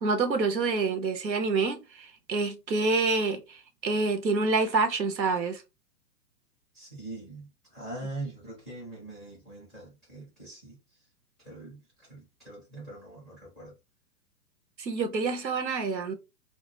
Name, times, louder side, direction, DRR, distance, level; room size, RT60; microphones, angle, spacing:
voice 1, 0.0-5.6 14.8-16.1, right 3 dB, 90° right, 0.7 m, -27 dB
voice 2, 6.7-10.8 11.4-13.8, right 2 dB, ahead, 0.4 m, -42 dB
2.1 x 2.1 x 3.1 m
figure-of-eight pair, 110°, 49 cm